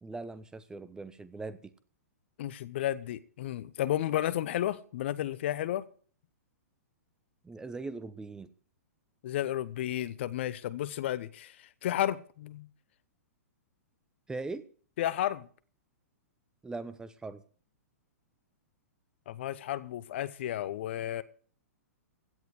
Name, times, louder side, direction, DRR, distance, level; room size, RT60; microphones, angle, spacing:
voice 1, 0.0-1.7 7.4-8.5 14.3-14.6 16.6-17.4, right 3 dB, 10° right, 0.9 m, -40 dB
voice 2, 2.4-5.9 9.2-12.7 15.0-15.5 19.3-21.2, left 12 dB, 50° left, 0.9 m, -32 dB
16.5 x 10.5 x 4.8 m
figure-of-eight pair, 110°, 8 cm